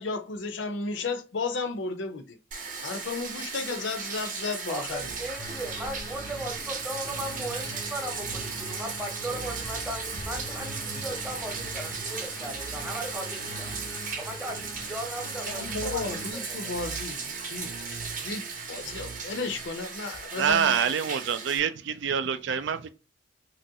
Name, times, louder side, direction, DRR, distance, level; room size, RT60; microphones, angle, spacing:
voice 1, 0.0-2.4 2.8-5.0 15.5-17.9 18.2-20.8, left 4 dB, 75° left, 0.6 m, -34 dB
Bathtub (filling or washing), 2.5-21.6, right 5 dB, 45° right, 0.7 m, -36 dB
voice 2, 4.7-13.7 14.2-16.7, right 1 dB, 10° right, 0.8 m, -37 dB
sound 1, 4.8-19.7, right 4 dB, 85° right, 0.8 m, -46 dB
sound 2, 5.4-16.3, left 1 dB, 15° left, 0.4 m, -43 dB
voice 3, 20.4-22.9, right 7 dB, 65° right, 0.4 m, -26 dB
3.0 x 2.5 x 2.7 m
head